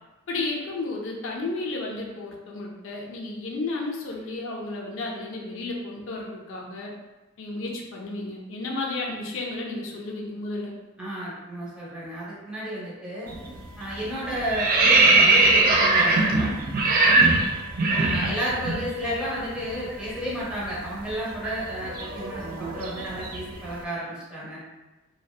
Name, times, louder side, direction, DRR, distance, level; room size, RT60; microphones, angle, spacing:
voice 1, 0.3-6.9 7.4-10.7 17.1-17.4, left 2 dB, 65° left, -1 dB, 0.4 m, -32 dB
voice 2, 11.0-13.3 13.8-16.6 18.0-22.5 22.7-24.6, equal, 5° right, -9 dB, 0.7 m, -32 dB
sound 1, 13.3-13.6 13.9-18.8 19.1-19.3 19.6-23.6, right 3 dB, 45° right, 0.3 m, -21 dB
2.6 x 2.1 x 2.3 m, 1.1 s
head